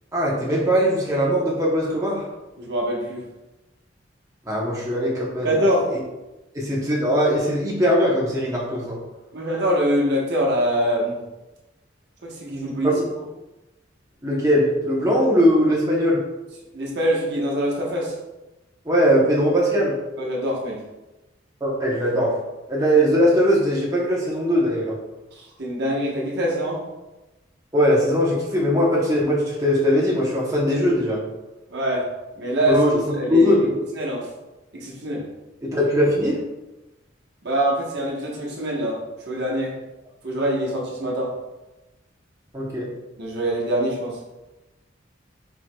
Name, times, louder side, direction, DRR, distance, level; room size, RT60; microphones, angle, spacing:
voice 1, 0.1-2.2 4.5-5.5 5.9-6.0 6.5-9.0 12.6-13.1 14.2-16.2 18.9-20.0 21.6-22.3 22.7-25.0 27.7-31.2 32.7-33.0 33.3-33.8 35.6-36.4 42.5-42.9, equal, 15° right, -5 dB, 0.7 m, -20 dB
voice 2, 2.6-3.2 5.4-5.9 9.3-11.2 12.2-12.9 16.7-18.1 20.2-20.8 25.4-26.8 31.7-32.1 32.4-32.8 33.1-33.5 33.9-34.3 34.7-35.2 37.4-39.7 40.2-41.3 43.2-44.2, right 1 dB, 60° right, -3 dB, 1.0 m, -24 dB
4.5 x 4.4 x 2.2 m, 1.0 s
head